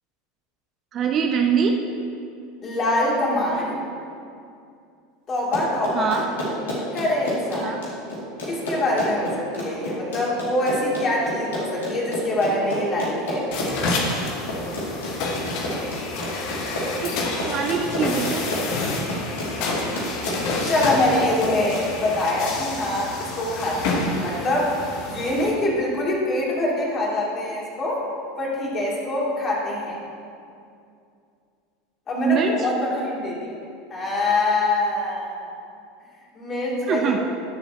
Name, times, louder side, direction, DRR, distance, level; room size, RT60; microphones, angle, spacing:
voice 1, 0.9-1.8 5.9-6.2 7.6-7.8 17.0-18.5 32.2-32.7 36.9-37.2, right 6 dB, 35° right, 4 dB, 0.7 m, -23 dB
voice 2, 2.6-3.8 5.3-6.2 6.9-7.8 8.4-13.5 20.6-24.7 25.1-28.0 28.4-30.0 32.1-33.6 33.9-35.6 36.3-37.2, left 1 dB, 30° left, -5 dB, 3.0 m, -24 dB
Run, 5.4-21.8, left 1 dB, 65° left, 2.8 m, -30 dB
sound 1, 13.5-25.5, left 3 dB, 50° left, 1.4 m, -29 dB
20.5 x 7.1 x 3.0 m, 2.5 s
figure-of-eight pair, 75°, 0 cm